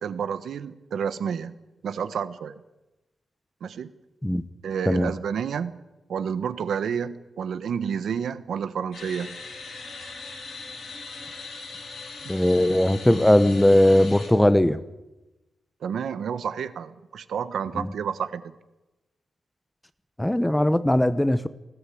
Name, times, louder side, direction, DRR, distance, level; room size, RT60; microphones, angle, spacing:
voice 1, 0.0-1.5 1.8-2.5 3.6-3.9 4.6-5.8 6.1-9.3 15.8-18.5, right 7 dB, 80° right, 12 dB, 1.3 m, -30 dB
sound 1, 8.9-14.3, left 3 dB, 70° left, 7.6 m, -39 dB
voice 2, 12.3-14.8 17.8-17.9 20.2-21.5, left 1 dB, 5° left, 13 dB, 0.9 m, -19 dB
20.0 x 17.0 x 8.6 m, 1.0 s
wide cardioid pair, 145°, 0 cm